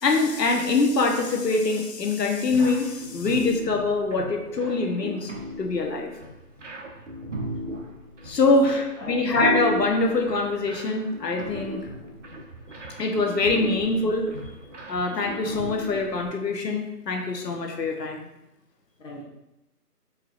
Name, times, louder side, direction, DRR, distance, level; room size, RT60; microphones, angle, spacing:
voice 1, 0.0-5.3 5.6-6.1 8.2-11.9 13.0-14.3 14.9-18.3, left 3 dB, 85° left, 3 dB, 0.9 m, -24 dB
sound 1, 2.5-16.3, equal, 50° right, 0.6 m, -36 dB
voice 2, 8.4-9.3 19.0-19.2, left 1 dB, 50° left, -1 dB, 0.9 m, -39 dB
4.5 x 3.2 x 2.4 m, 0.92 s
figure-of-eight pair, 155°, 48 cm